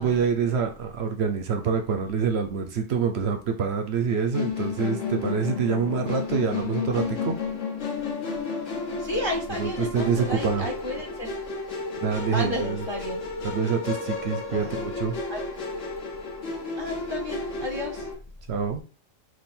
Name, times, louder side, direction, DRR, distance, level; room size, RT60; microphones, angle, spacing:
voice 1, 0.0-7.4 9.5-10.7 12.0-12.8 13.4-15.2 18.5-18.8, right 6 dB, 60° right, 5 dB, 0.8 m, -26 dB
Musical instrument, 4.3-18.1, left 4 dB, 70° left, 1.4 m, -32 dB
voice 2, 9.0-11.3 12.3-13.2 14.5-14.8 15.3-15.4 16.8-18.1, left 1 dB, 35° left, 1 dB, 0.5 m, -32 dB
3.7 x 2.7 x 4.2 m, 0.35 s
omnidirectional pair, 1.4 m